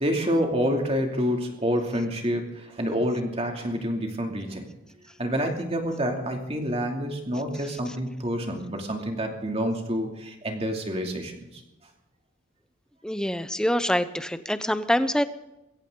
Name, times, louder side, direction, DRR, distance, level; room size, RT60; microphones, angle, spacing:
voice 1, 0.0-4.6 5.2-11.5, equal, 30° right, 2 dB, 2.7 m, -28 dB
voice 2, 13.0-15.2, equal, 5° left, 11 dB, 0.7 m, -25 dB
22.0 x 16.5 x 3.9 m, 0.93 s
head